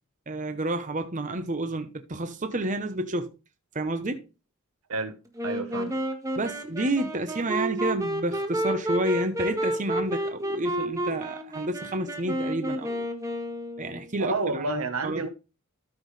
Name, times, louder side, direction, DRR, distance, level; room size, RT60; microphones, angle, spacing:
voice 1, 0.3-3.3 3.7-4.2 6.4-13.1 13.8-15.3, right 1 dB, 35° right, 1.0 m, -30 dB
Wind instrument woodwind instrument, 5.4-14.1, equal, 15° right, 1.6 m, -31 dB
voice 2, 5.4-6.0 14.2-15.3, right 3 dB, 75° right, 1.3 m, -29 dB
13.5 x 6.2 x 3.3 m
head